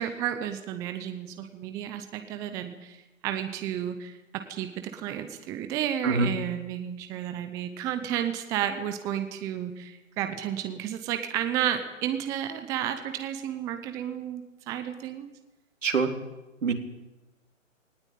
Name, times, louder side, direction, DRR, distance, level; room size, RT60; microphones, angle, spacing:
voice 1, 0.0-3.0 3.2-4.2 4.5-15.3, right 10 dB, 10° right, 8 dB, 0.7 m, -32 dB
voice 2, 15.8-16.1 16.6-16.7, right 4 dB, 70° right, 5 dB, 3.7 m, -24 dB
19.0 x 19.0 x 9.1 m, 1.0 s
hypercardioid pair, 145°, 39 cm